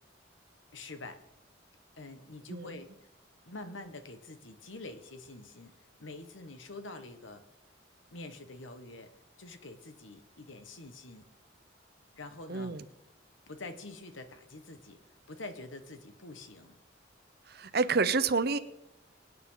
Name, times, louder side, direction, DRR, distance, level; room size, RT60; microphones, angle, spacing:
voice 1, 0.7-1.2 2.0-2.9 3.4-5.7 6.0-7.4 8.1-9.1 9.4-11.3 12.1-12.8 13.5-15.0 15.3-16.8, left 2 dB, 75° left, 8 dB, 1.5 m, -46 dB
voice 2, 2.5-2.8 12.5-12.8 17.5-18.6, right 4 dB, 50° right, 11 dB, 0.9 m, -29 dB
24.5 x 9.4 x 4.0 m, 0.90 s
head